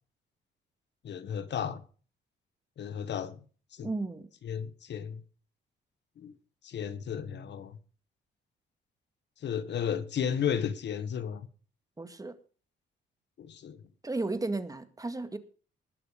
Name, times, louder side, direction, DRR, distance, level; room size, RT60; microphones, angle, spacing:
voice 1, 1.0-1.8 2.8-3.4 3.7-3.9 4.4-5.2 6.2-6.3 6.6-7.8 9.4-11.5 13.4-13.8, left 8 dB, 60° left, 1.5 m, -33 dB
voice 2, 3.8-4.3 12.0-12.4 14.0-15.4, right 2 dB, 15° right, 2.0 m, -34 dB
20.0 x 6.7 x 5.3 m
cardioid pair, 90°, 20 cm